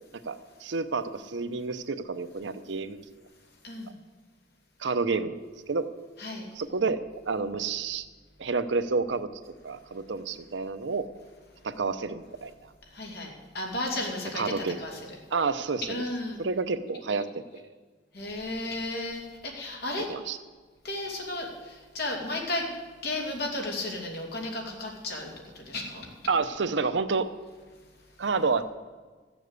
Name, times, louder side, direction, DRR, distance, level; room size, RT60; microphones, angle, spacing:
voice 1, 0.2-3.0 4.8-5.4 5.7-5.9 6.5-8.1 8.4-9.3 9.6-11.1 11.6-12.5 14.3-14.8 15.3-16.0 16.4-17.6 20.1-20.4 26.3-27.3 28.2-28.6, right 4 dB, 80° right, 12 dB, 0.7 m, -29 dB
voice 2, 3.6-3.9 6.2-6.5 12.9-15.2 15.9-16.4 18.1-20.1 20.8-22.7 23.0-25.3 25.5-26.1, left 2 dB, 60° left, 0 dB, 2.7 m, -34 dB
14.0 x 7.2 x 8.1 m, 1.4 s
head